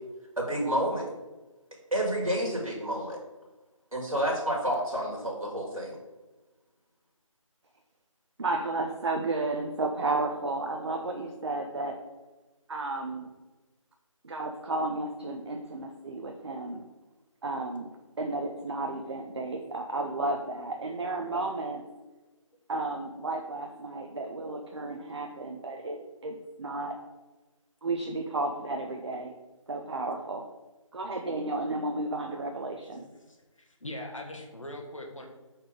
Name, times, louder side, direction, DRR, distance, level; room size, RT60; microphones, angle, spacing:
voice 1, 0.4-1.1 1.9-3.2 3.9-6.0, right 1 dB, 85° right, -2 dB, 2.0 m, -29 dB
voice 2, 8.4-12.0 12.7-13.3 14.2-16.8 17.4-17.9 18.2-21.8 22.7-27.0 27.8-29.3 29.7-30.4 30.9-33.1, right 2 dB, 50° right, 3 dB, 0.6 m, -33 dB
voice 3, 33.8-35.2, left 1 dB, 65° left, 2 dB, 1.5 m, -40 dB
5.0 x 4.4 x 5.0 m, 1.2 s
figure-of-eight pair, 160°, 18 cm